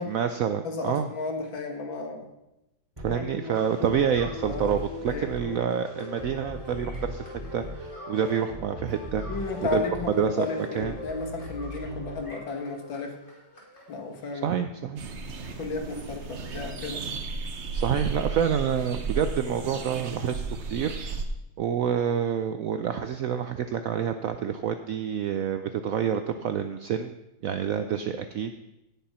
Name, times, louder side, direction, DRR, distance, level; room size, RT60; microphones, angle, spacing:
voice 1, 0.1-1.1 3.0-9.2 9.6-9.8 10.2-11.0 14.4-15.0 17.7-21.0 21.6-27.1 27.4-28.5, right 8 dB, 75° right, 8 dB, 0.7 m, -28 dB
voice 2, 0.6-2.3 3.1-3.6 4.4-4.7 5.1-5.5 9.3-13.2 13.9-14.5 15.6-17.1, left 3 dB, 75° left, 4 dB, 2.4 m, -33 dB
sound 1, 3.0-13.1, left 1 dB, 10° right, 2.3 m, -38 dB
sound 2, 3.5-8.6 8.9-14.4, equal, 25° left, 2.8 m, -51 dB
sound 3, 15.0-21.2, right 4 dB, 45° right, 1.0 m, -34 dB
17.5 x 5.9 x 5.6 m, 0.92 s
omnidirectional pair, 2.1 m